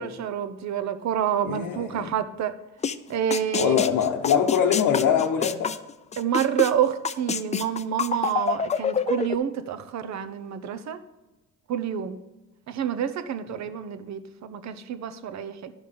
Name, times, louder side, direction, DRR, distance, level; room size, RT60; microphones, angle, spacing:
voice 1, 0.0-2.6 3.1-3.8 6.2-11.0 11.7-12.2 12.7-15.7, right 9 dB, 65° right, 0.7 m, -28 dB
voice 2, 1.4-2.1 3.5-5.7, left 8 dB, 80° left, 0.8 m, -23 dB
sound 1, 2.8-3.0 3.3-6.7 7.0-9.4, left 6 dB, 25° left, 0.4 m, -27 dB
11.5 x 5.2 x 5.2 m
cardioid pair, 90°, 30 cm